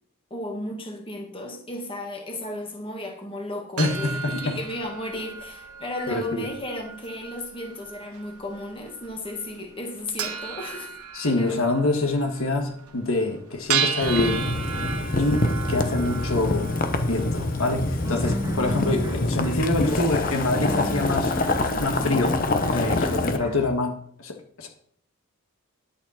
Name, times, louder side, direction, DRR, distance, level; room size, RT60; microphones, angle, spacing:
voice 1, 0.3-11.0 11.4-11.6 15.9-16.1, left 1 dB, 25° left, 1 dB, 1.8 m, -34 dB
voice 2, 3.8-4.6 6.1-6.5 11.1-14.5 15.2-16.7 17.0-21.3 21.8-24.7, left 2 dB, 70° left, 4 dB, 1.5 m, -26 dB
sound 1, 3.8-21.7, right 7 dB, 90° right, 1.2 m, -35 dB
Boiling, 14.0-23.4, left 2 dB, 40° left, 0.9 m, -26 dB
sound 2, 18.0-23.7, left 1 dB, 15° right, 1.6 m, -35 dB
11.0 x 8.4 x 4.3 m, 0.63 s
head